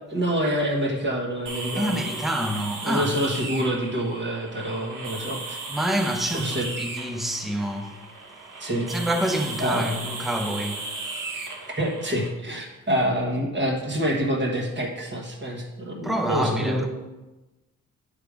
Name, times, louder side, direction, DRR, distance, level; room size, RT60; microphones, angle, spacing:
voice 1, 0.1-2.1 2.8-5.6 6.3-6.7 8.6-8.9 9.6-9.9 11.8-16.9, equal, 35° right, 1.3 m, -26 dB
sound 1, 1.5-12.3, right 3 dB, 70° right, 1.1 m, -36 dB
voice 2, 1.8-3.1 5.7-8.0 8.9-10.9 16.0-16.9, equal, ahead, 0.5 m, -27 dB
8.6 x 3.5 x 4.9 m
wide cardioid pair, 150°, 33 cm